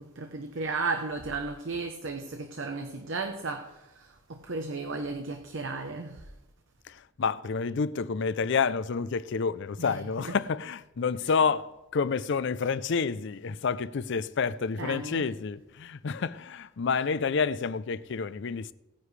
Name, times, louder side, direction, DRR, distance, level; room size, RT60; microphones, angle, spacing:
voice 1, 0.0-6.3 9.8-10.4 11.2-11.3 14.8-15.3, right 3 dB, 65° right, 0.9 m, -35 dB
voice 2, 6.9-18.7, left 5 dB, 60° left, 0.5 m, -29 dB
18.0 x 9.7 x 3.3 m
head